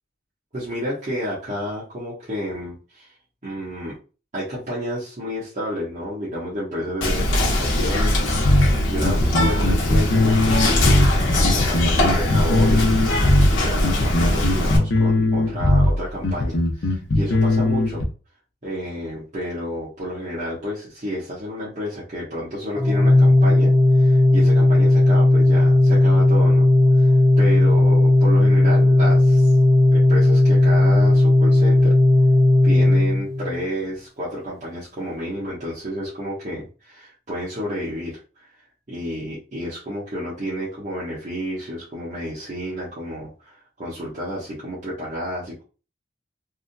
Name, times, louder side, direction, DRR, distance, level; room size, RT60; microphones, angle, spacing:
voice 1, 0.5-3.1 3.4-4.0 4.3-8.3 8.9-13.0 13.5-18.1 18.6-26.7 27.0-27.1 27.4-29.5 29.9-31.9 32.6-38.5 38.9-45.6, equal, 40° right, -9 dB, 1.2 m, -30 dB
Whispering, 7.0-14.8, left 1 dB, 90° left, 0.9 m, -21 dB
sound 1, 8.4-18.0, left 2 dB, 65° left, 0.7 m, -19 dB
Organ, 22.7-33.6, left 2 dB, ahead, 0.4 m, -15 dB
3.5 x 2.7 x 2.2 m, 0.34 s
head